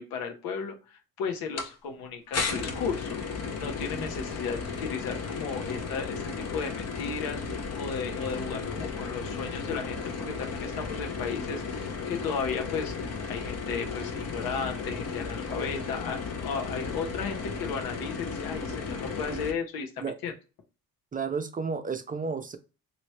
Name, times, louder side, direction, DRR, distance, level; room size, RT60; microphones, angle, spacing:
voice 1, 0.0-3.2 3.6-12.9 13.3-20.3, left 5 dB, 85° left, 3 dB, 1.0 m, -35 dB
sound 1, 1.6-1.7 2.3-19.5, left 5 dB, 45° left, 0.8 m, -34 dB
voice 2, 21.1-22.6, right 5 dB, 25° right, 8 dB, 0.5 m, -32 dB
3.1 x 2.6 x 3.1 m, 0.32 s
cardioid pair, 85°, 35 cm